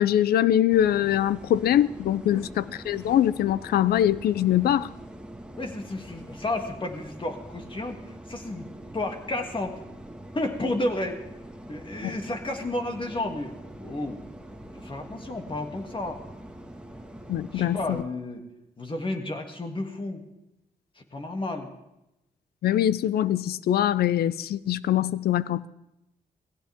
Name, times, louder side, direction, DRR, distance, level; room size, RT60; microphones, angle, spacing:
voice 1, 0.0-4.9 12.0-12.1 17.3-18.0 22.6-25.7, left 11 dB, 80° left, 18 dB, 0.6 m, -23 dB
sound 1, 0.7-18.0, right 1 dB, 5° right, 1.8 m, -44 dB
voice 2, 5.6-8.0 8.3-8.6 8.9-9.8 10.3-11.2 11.7-14.2 14.7-16.2 17.5-18.4 18.8-20.2 21.1-21.7, left 2 dB, 30° left, 3 dB, 2.7 m, -32 dB
19.0 x 16.0 x 3.7 m, 0.91 s
supercardioid pair, 55°, 16 cm